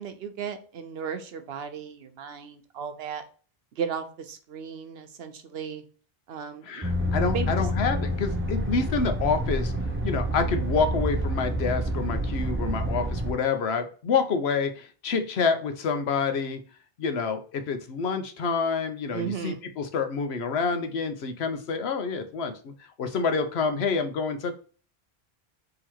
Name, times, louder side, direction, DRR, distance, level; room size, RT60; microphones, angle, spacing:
voice 1, 0.0-3.2 3.7-5.8 6.3-6.9 7.3-7.7 12.1-12.4 19.1-19.6, right 7 dB, 80° right, 7 dB, 0.9 m, -35 dB
voice 2, 6.7-9.7 10.0-16.6 17.0-22.7 23.0-24.6, left 5 dB, 85° left, 8 dB, 1.0 m, -27 dB
sound 1, 6.8-13.3, equal, 20° right, 0.4 m, -28 dB
3.8 x 2.9 x 4.5 m, 0.39 s
omnidirectional pair, 1.0 m